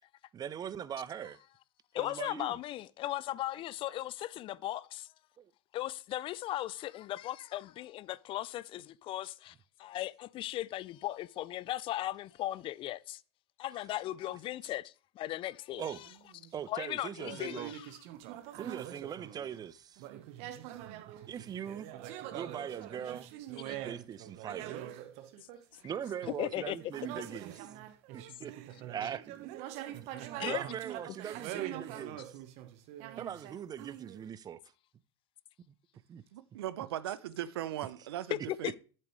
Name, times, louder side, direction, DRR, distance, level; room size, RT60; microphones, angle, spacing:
voice 1, 0.3-1.4 2.0-2.5 5.4-5.5 15.8-16.0 16.5-17.7 18.6-20.0 21.3-21.9 22.3-23.3 23.7-24.7 25.8-27.7 28.1-29.5 29.9-30.1 30.4-32.3 33.2-34.6 36.1-36.2, right 9 dB, 30° right, 0.7 m, -41 dB
voice 2, 1.9-5.1 5.7-13.2 13.6-16.1 16.7-18.0 23.7-23.8 26.4-26.8 30.4-30.6 38.3-38.7, left 14 dB, 40° left, 0.5 m, -37 dB
sound 1, 15.8-16.6 17.2-19.7 20.0-34.3, right 12 dB, 55° right, 1.1 m, -44 dB
voice 3, 36.3-38.7, right 12 dB, 75° right, 0.8 m, -38 dB
12.0 x 7.6 x 3.2 m
hypercardioid pair, 85°, 13 cm